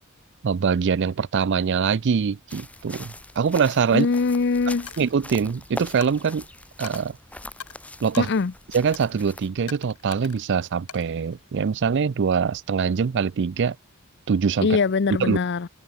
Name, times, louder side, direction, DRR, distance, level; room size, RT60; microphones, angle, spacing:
voice 1, 0.4-4.1 5.0-6.4 6.8-7.2 8.0-8.3 8.7-13.8 14.3-14.7 15.2-15.4, right 6 dB, 55° right, 0.4 m, -23 dB
sound 1, 2.5-9.5, left 1 dB, 5° left, 2.7 m, -41 dB
voice 2, 3.9-4.9 8.2-8.5 14.6-15.7, left 4 dB, 50° left, 0.5 m, -22 dB
Coin (dropping), 4.9-5.2 6.0-6.4 6.8-7.0 7.6-7.8 8.1-8.4 8.9-9.2 9.7-10.4 10.9-11.8, left 8 dB, 90° left, 4.1 m, -42 dB
head